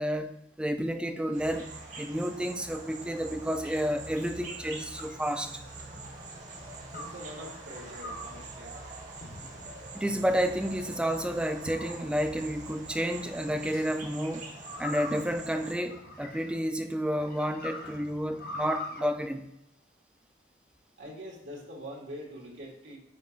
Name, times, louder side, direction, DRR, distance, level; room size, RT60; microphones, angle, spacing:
voice 1, 0.0-1.7 2.0-5.5 9.9-14.5 14.8-19.5, equal, 5° right, 0.4 m, -30 dB
sound 1, 1.3-15.7, right 2 dB, 40° right, 1.1 m, -44 dB
sound 2, 4.3-5.9 6.9-7.3 8.0-8.4 9.2-9.7 10.3-10.9 11.6-12.4 13.5-13.8 14.6-16.7 17.2-19.0, left 1 dB, 50° left, 0.9 m, -43 dB
voice 2, 6.9-8.7 21.0-23.0, equal, 75° right, 1.8 m, -44 dB
9.7 x 4.0 x 2.4 m
head